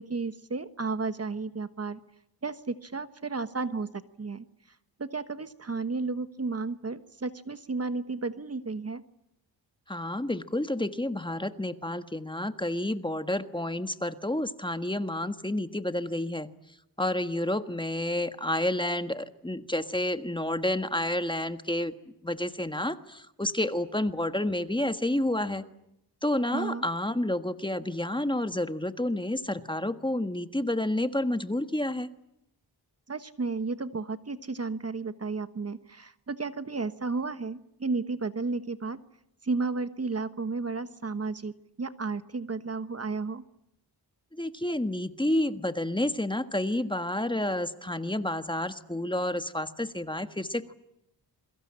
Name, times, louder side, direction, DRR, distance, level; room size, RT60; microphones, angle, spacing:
voice 1, 0.0-2.0 2.4-4.4 5.0-9.0 26.5-26.8 33.1-39.0 39.4-41.5 41.8-43.4, right 4 dB, 35° right, 11 dB, 1.3 m, -33 dB
voice 2, 9.9-16.5 17.0-21.9 22.2-25.6 26.2-32.1 44.3-50.7, left 1 dB, 10° left, 9 dB, 1.5 m, -30 dB
28.0 x 23.0 x 8.8 m, 0.83 s
wide cardioid pair, 95°, 42 cm